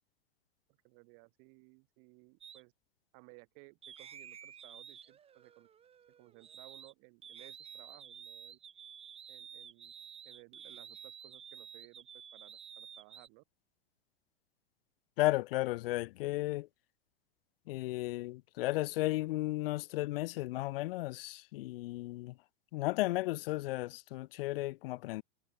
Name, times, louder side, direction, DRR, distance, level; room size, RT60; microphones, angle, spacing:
voice 1, 0.8-2.7 3.1-5.7 6.1-8.6 9.3-9.9 10.2-13.4, right 37 dB, 45° right, 3.0 m, -59 dB
sound 1, 2.4-2.6 3.8-6.9 7.2-13.3, right 8 dB, 20° right, 1.6 m, -51 dB
voice 2, 15.2-16.7 17.7-22.3 22.7-25.2, left 18 dB, 65° left, 0.7 m, -34 dB
supercardioid pair, 135°, 31 cm